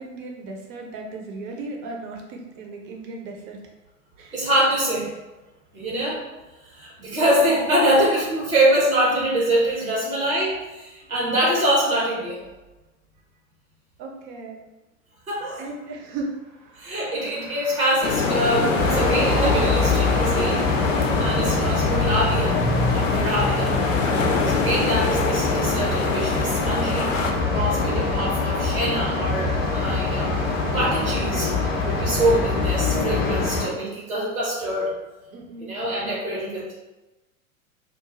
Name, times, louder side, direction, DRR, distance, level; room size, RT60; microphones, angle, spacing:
voice 1, 0.0-3.6 4.2-4.5 11.1-11.4 14.0-14.6 15.6-16.3 27.6-28.0 35.3-35.8, right 3 dB, 30° right, 0 dB, 0.5 m, -36 dB
voice 2, 4.3-5.1 5.7-6.3 6.6-12.4 15.3-15.6 16.8-20.7 21.2-22.6 22.9-23.8 24.5-27.2 27.5-30.4 30.7-31.5 31.8-34.9 35.6-36.7, right 1 dB, 85° right, -4 dB, 1.1 m, -24 dB
Car passing by, 16.4-32.5, right 4 dB, 60° right, 0.7 m, -40 dB
sound 1, 18.0-27.3, left 5 dB, 65° left, 0.5 m, -27 dB
sound 2, 18.8-33.7, left 3 dB, 20° left, 0.6 m, -23 dB
2.4 x 2.2 x 2.9 m, 1.1 s
figure-of-eight pair, 90°, 41 cm